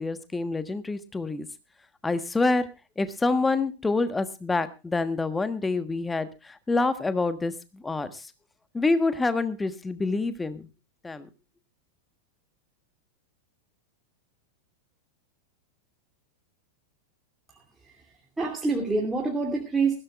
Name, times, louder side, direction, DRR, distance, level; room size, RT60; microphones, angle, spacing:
voice 1, 0.0-1.5 2.0-2.7 3.0-8.3 8.7-10.7 11.0-11.3, left 3 dB, 10° left, 11 dB, 1.3 m, -27 dB
voice 2, 17.5-19.9, right 3 dB, 10° right, -2 dB, 2.6 m, -28 dB
20.0 x 15.5 x 2.4 m, 0.29 s
figure-of-eight pair, 90°, 0 cm